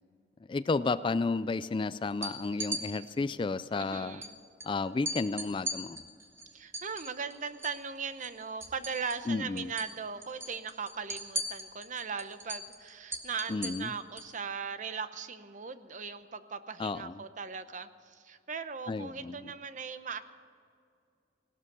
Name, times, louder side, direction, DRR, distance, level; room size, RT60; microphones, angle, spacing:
voice 1, 0.5-4.2 4.6-6.0 9.3-9.7 13.5-13.9 16.8-17.2 18.9-19.5, left 3 dB, 25° left, 15 dB, 0.3 m, -32 dB
sound 1, 2.1-2.8 4.2-4.3 4.6-4.7 5.1-7.8 8.1-9.3 9.6-9.9 10.2-14.3, right 1 dB, 15° right, 1.5 m, -38 dB
voice 2, 3.8-4.4 6.5-20.2, right 5 dB, 45° right, 11 dB, 0.8 m, -39 dB
17.0 x 12.5 x 6.7 m, 2.3 s
head